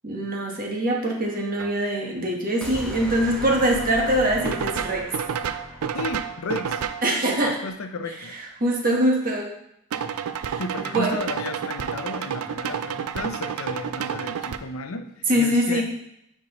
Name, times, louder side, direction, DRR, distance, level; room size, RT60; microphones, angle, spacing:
voice 1, 0.0-5.1 7.0-7.6 8.6-9.5 10.4-11.1 15.3-15.8, right 1 dB, 40° right, 0 dB, 1.2 m, -23 dB
sound 1, 1.6-1.7 4.4-7.1 9.9-14.6, right 7 dB, 85° right, 0.4 m, -30 dB
sound 2, 2.6-6.9, left 1 dB, 5° left, 1.1 m, -38 dB
voice 2, 5.9-6.8 7.4-8.3 10.6-15.8, left 2 dB, 70° left, 7 dB, 0.6 m, -33 dB
9.9 x 4.5 x 3.0 m, 0.78 s
head